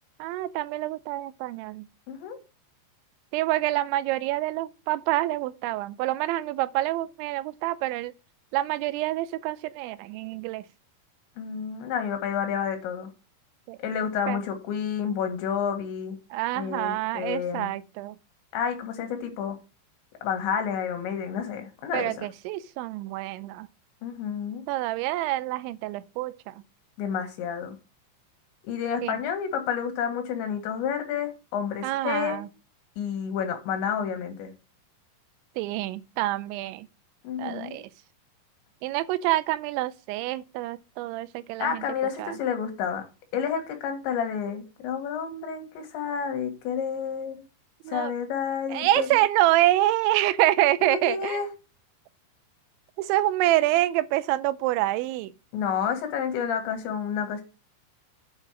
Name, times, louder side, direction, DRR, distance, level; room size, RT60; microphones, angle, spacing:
voice 1, 0.2-1.9 3.3-8.1 8.5-10.6 13.7-13.8 14.3-14.4 16.3-18.2 21.9-23.7 24.7-26.5 29.0-29.2 31.8-32.5 35.6-36.9 37.4-37.8 38.8-41.8 42.2-42.3 47.9-48.1 48.7-51.4 53.0-55.3, right 16 dB, 85° right, 3.0 m, -26 dB
voice 2, 2.1-2.4 11.4-13.1 13.8-16.2 16.5-17.7 18.5-19.6 20.2-22.3 24.0-24.6 27.0-27.8 28.7-32.4 33.0-34.5 37.2-37.8 41.6-43.0 43.3-47.4 47.9-49.2 50.8-51.5 55.5-57.4, left 7 dB, 80° left, 3.9 m, -30 dB
8.8 x 4.7 x 6.2 m
omnidirectional pair, 5.2 m